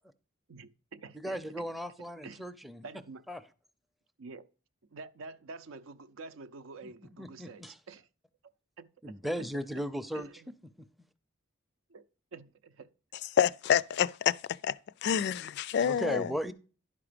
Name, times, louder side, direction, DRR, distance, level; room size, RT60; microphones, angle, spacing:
voice 1, 0.5-1.7 2.0-2.5 2.8-3.2 4.2-4.5 4.9-8.1 8.8-9.5 10.1-10.5 11.9-12.0 12.3-12.9, right 4 dB, 80° right, 0.6 m, -48 dB
voice 2, 1.1-2.8 3.3-3.4 6.8-7.7 9.0-10.3 10.8-10.9 15.8-16.5, equal, ahead, 0.5 m, -36 dB
voice 3, 13.3-14.4 14.6-16.3, left 8 dB, 55° left, 0.3 m, -28 dB
11.0 x 4.9 x 5.0 m
head